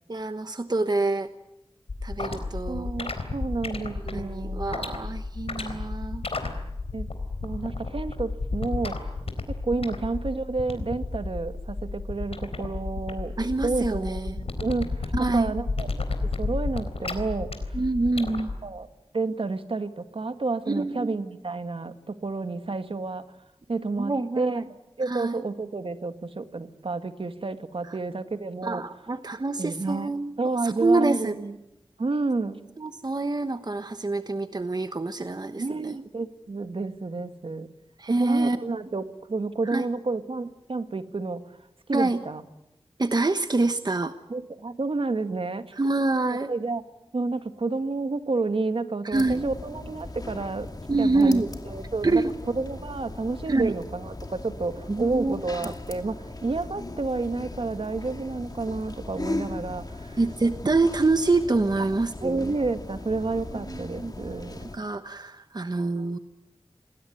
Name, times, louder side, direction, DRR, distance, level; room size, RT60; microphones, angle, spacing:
voice 1, 0.1-1.3 2.0-2.9 4.0-6.2 9.7-9.8 13.4-14.4 15.1-15.5 17.7-18.5 20.7-21.1 24.0-24.6 25.1-25.4 28.6-30.4 30.6-31.4 32.8-35.9 38.0-38.6 39.7-39.8 41.9-42.2 43.0-44.1 45.7-46.5 49.0-49.5 50.9-51.5 52.0-52.3 53.5-53.7 54.9-55.7 60.2-62.5 63.7-64.1 64.7-66.2, right 3 dB, 45° right, 9 dB, 1.1 m, -26 dB
sound 1, 1.9-18.5, left 3 dB, 80° left, 3.9 m, -32 dB
voice 2, 2.7-4.6 6.9-7.1 7.4-9.1 9.5-13.3 13.6-15.9 16.4-17.5 18.6-18.9 19.1-23.3 23.7-28.8 29.6-30.1 30.4-31.6 32.0-32.6 35.6-37.7 38.1-41.4 41.9-42.4 44.0-45.8 46.5-46.8 47.1-50.7 51.0-56.2 56.4-60.2 61.8-61.9 62.2-64.7, right 3 dB, 65° right, 9 dB, 1.8 m, -30 dB
sound 2, 49.1-64.8, left 2 dB, 40° left, 2.5 m, -38 dB
28.0 x 20.5 x 9.5 m, 0.92 s
wide cardioid pair, 75°, 10 cm